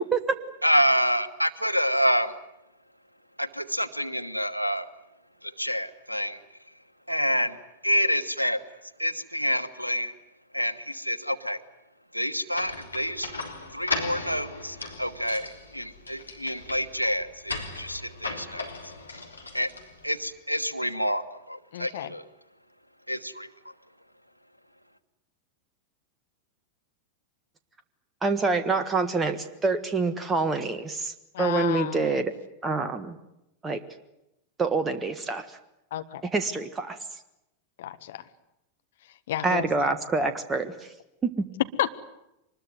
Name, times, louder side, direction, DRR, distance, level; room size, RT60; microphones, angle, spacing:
voice 1, 0.6-2.3 3.4-4.9 5.4-6.4 7.1-7.6 7.8-8.6 9.0-10.1 10.5-11.6 12.1-13.3 13.7-18.6 19.5-19.7 20.0-22.2 23.1-23.5, equal, 90° right, 11 dB, 1.3 m, -27 dB
sound 1, 12.5-20.2, left 3 dB, 80° left, 3.3 m, -37 dB
voice 2, 21.7-22.1 31.3-32.2 35.9-36.2 37.8-38.2 39.3-39.7 41.8-41.9, left 12 dB, 55° left, 9 dB, 1.5 m, -31 dB
voice 3, 28.2-31.1 31.4-32.3 32.6-33.2 33.6-33.8 34.6-35.5 36.2-37.0 39.4-40.7 41.2-41.4, right 3 dB, 15° right, 9 dB, 1.5 m, -26 dB
24.5 x 21.0 x 9.4 m, 0.88 s
figure-of-eight pair, 90°, 0 cm